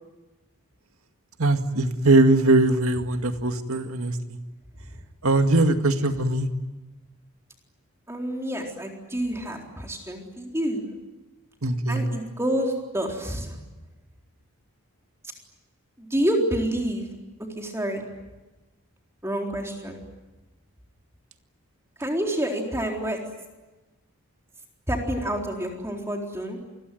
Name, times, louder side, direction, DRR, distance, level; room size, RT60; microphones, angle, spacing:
voice 1, 1.4-4.2 5.2-6.5 11.6-12.0, right 2 dB, 75° right, 7 dB, 2.1 m, -21 dB
voice 2, 8.1-11.0 11.9-13.6 16.0-17.1 17.6-18.0 19.2-20.0 22.0-23.2 24.9-26.6, right 1 dB, 10° right, 1 dB, 4.0 m, -28 dB
27.0 x 21.5 x 9.3 m, 1.1 s
head